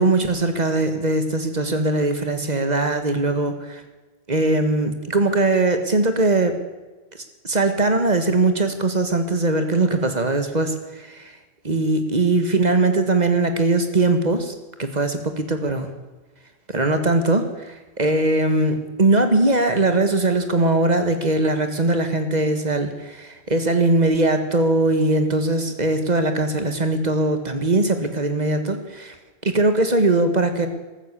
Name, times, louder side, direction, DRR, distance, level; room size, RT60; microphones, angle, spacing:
voice 1, 0.0-3.8 4.3-6.6 7.4-11.3 11.6-14.5 14.8-15.9 16.7-29.1 29.4-30.7, right 2 dB, 40° right, 8 dB, 1.9 m, -20 dB
15.0 x 13.5 x 6.8 m, 1.2 s
omnidirectional pair, 1.1 m